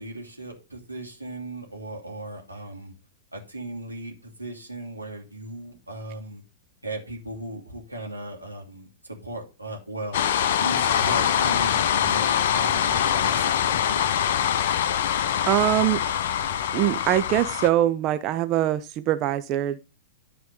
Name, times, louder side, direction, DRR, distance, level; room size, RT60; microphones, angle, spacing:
voice 1, 0.0-2.9 3.3-6.4 6.8-10.2 10.6-14.1, right 1 dB, 90° right, 0 dB, 2.7 m, -37 dB
sound 1, 10.1-17.7, left 9 dB, 55° left, 0.7 m, -24 dB
voice 2, 15.5-16.0 16.7-19.8, right 13 dB, 35° right, 11 dB, 0.6 m, -23 dB
11.5 x 4.3 x 5.3 m, 0.32 s
figure-of-eight pair, 100°, 0 cm